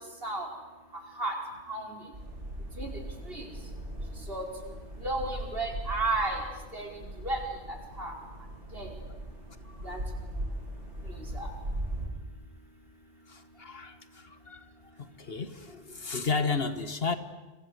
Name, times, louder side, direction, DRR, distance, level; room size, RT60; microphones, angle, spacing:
sound 1, 2.1-12.1, right 1 dB, 70° right, 7.7 m, -39 dB
voice 1, 5.0-6.4 6.7-6.9 7.2-7.4 8.0-8.1 8.7-8.9 9.8-10.0 11.3-11.5, right 2 dB, 55° right, 2 dB, 5.3 m, -32 dB
voice 2, 13.3-14.7 15.0-17.2, left 4 dB, 55° left, 11 dB, 1.7 m, -33 dB
30.0 x 24.0 x 8.2 m, 1.2 s
omnidirectional pair, 1.2 m